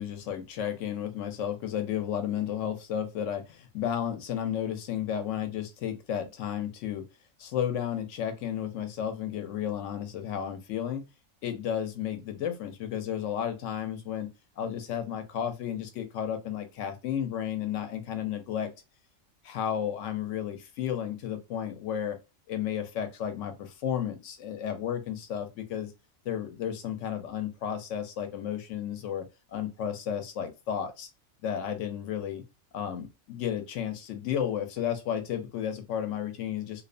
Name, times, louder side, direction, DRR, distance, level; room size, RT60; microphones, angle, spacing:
voice 1, 0.0-7.0 7.4-11.0 11.4-14.3 14.6-18.7 19.4-22.2 22.5-25.9 26.2-31.1 31.4-32.4 32.7-36.8, left 9 dB, 70° left, 0.9 m, -33 dB
2.7 x 2.0 x 2.5 m
omnidirectional pair, 1.4 m